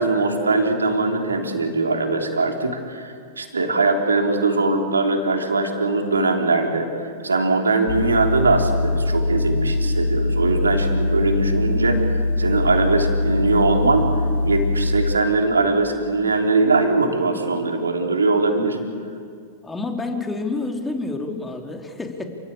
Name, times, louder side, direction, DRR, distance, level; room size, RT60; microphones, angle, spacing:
voice 1, 0.0-14.1 14.4-18.8, right 3 dB, 90° right, 2 dB, 3.4 m, -21 dB
sound 1, 7.9-15.1, left 2 dB, 75° left, 1.5 m, -22 dB
voice 2, 19.6-22.2, left 3 dB, 10° left, 3 dB, 2.9 m, -28 dB
28.5 x 16.0 x 8.7 m, 2.2 s
hypercardioid pair, 100°, 0 cm